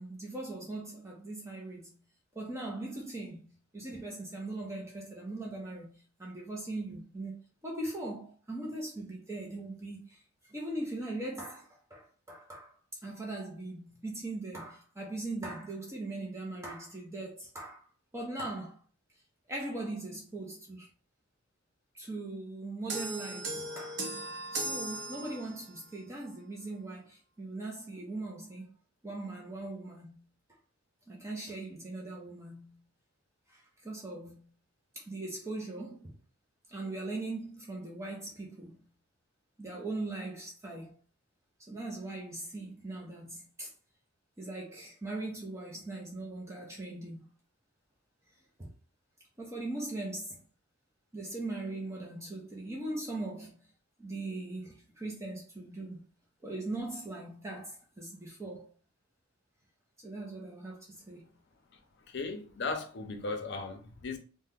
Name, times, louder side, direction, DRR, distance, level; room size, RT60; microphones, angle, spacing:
voice 1, 0.0-1.9 2.3-7.4 7.6-10.2 10.5-12.7 13.0-17.9 18.1-18.8 19.5-20.9 21.9-24.1 24.5-28.7 29.0-30.2 31.1-32.8 33.5-34.5 34.9-36.2 36.7-38.8 39.6-40.9 41.7-43.7 44.4-47.3 48.6-48.7 49.4-50.4 51.1-53.5 54.0-56.0 56.4-58.7 60.0-61.2, right 2 dB, 15° right, 0.5 m, -40 dB
sound 1, 22.9-25.8, right 2 dB, 55° right, 0.6 m, -37 dB
voice 2, 62.1-64.2, left 3 dB, 55° left, 0.6 m, -36 dB
2.8 x 2.1 x 3.5 m
head